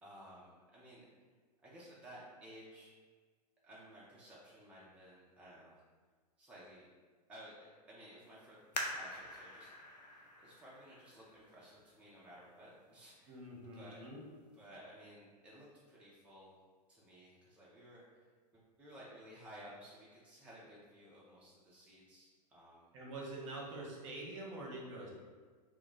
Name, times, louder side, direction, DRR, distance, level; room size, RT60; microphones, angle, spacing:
voice 1, 0.0-1.1 1.6-2.9 3.6-5.7 6.4-6.9 7.3-9.7 10.1-13.4 13.7-14.0 14.5-16.6 16.9-22.9, equal, 5° right, -7 dB, 0.5 m, -56 dB
sound 1, 8.7-12.1 12.7-12.8 13.4-13.8 14.2-14.3, left 1 dB, 75° left, 0.5 m, -45 dB
voice 2, 13.3-14.2 22.9-25.1, right 2 dB, 45° right, -2 dB, 0.7 m, -45 dB
2.3 x 2.2 x 3.9 m, 1.5 s
figure-of-eight pair, 100°, 21 cm